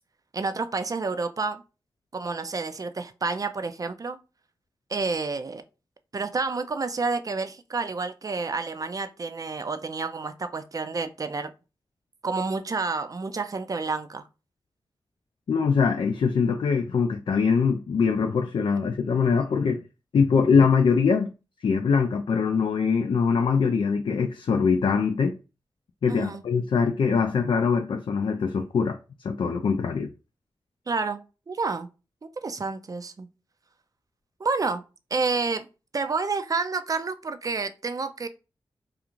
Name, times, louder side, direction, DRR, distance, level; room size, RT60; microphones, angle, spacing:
voice 1, 0.3-1.6 2.1-4.2 4.9-5.6 6.1-11.5 12.2-14.2 26.1-26.4 30.9-31.9 32.2-33.3 34.4-34.8 35.1-35.7 35.9-38.3, right 4 dB, 40° right, 0.4 m, -29 dB
voice 2, 15.5-19.8 20.1-21.3 21.6-25.4 26.0-29.0 29.2-30.1, left 5 dB, 65° left, 0.3 m, -23 dB
2.5 x 2.4 x 2.9 m
cardioid pair, 45°, 9 cm